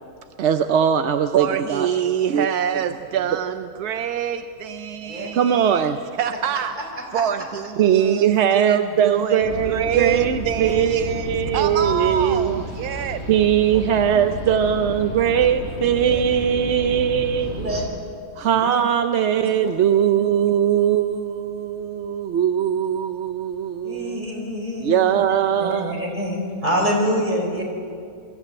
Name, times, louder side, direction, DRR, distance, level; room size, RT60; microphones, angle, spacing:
voice 1, 0.4-1.9 2.3-2.5 2.7-2.8 5.3-6.0 7.8-12.6 13.3-17.7 18.4-25.9, right 9 dB, 60° right, 8 dB, 0.8 m, -20 dB
voice 2, 1.3-5.8 6.2-6.7 7.1-13.2, right 9 dB, 80° right, 9 dB, 1.2 m, -26 dB
sound 1, 9.4-17.9, left 1 dB, 45° left, 4.7 m, -32 dB
voice 3, 23.8-25.0 25.6-27.6, equal, 30° right, -1 dB, 4.4 m, -25 dB
22.5 x 14.0 x 8.8 m, 2.3 s
omnidirectional pair, 1.6 m